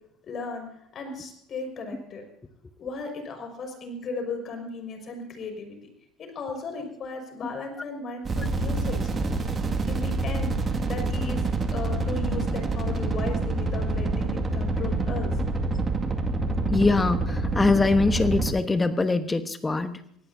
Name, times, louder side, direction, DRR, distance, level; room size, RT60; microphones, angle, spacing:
voice 1, 0.2-2.2 2.8-5.8 6.2-9.1 9.9-10.6 10.8-11.4 11.7-15.3, left 3 dB, 45° left, 4 dB, 5.7 m, -36 dB
sound 1, 8.2-18.5, right 2 dB, 30° right, 2.1 m, -27 dB
voice 2, 16.7-20.0, left 3 dB, 20° left, 10 dB, 1.2 m, -23 dB
24.5 x 17.5 x 2.8 m, 0.72 s
hypercardioid pair, 75°, 0 cm